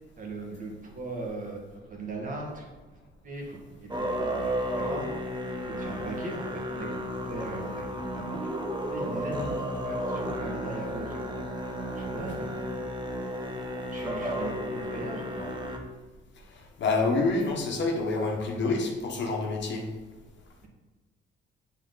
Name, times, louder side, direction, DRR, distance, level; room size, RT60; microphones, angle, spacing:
voice 1, 0.2-1.6 1.9-2.7 3.2-5.1 5.7-6.9 7.1-8.4 8.9-11.4 11.9-12.9 13.9-15.5, right 2 dB, 40° right, 0 dB, 1.7 m, -39 dB
Musical instrument, 3.9-15.8, equal, 25° right, 1.0 m, -33 dB
voice 2, 16.8-19.8, left 3 dB, 65° left, 1 dB, 1.3 m, -27 dB
7.1 x 4.6 x 3.9 m, 1.2 s
cardioid pair, 90°, 20 cm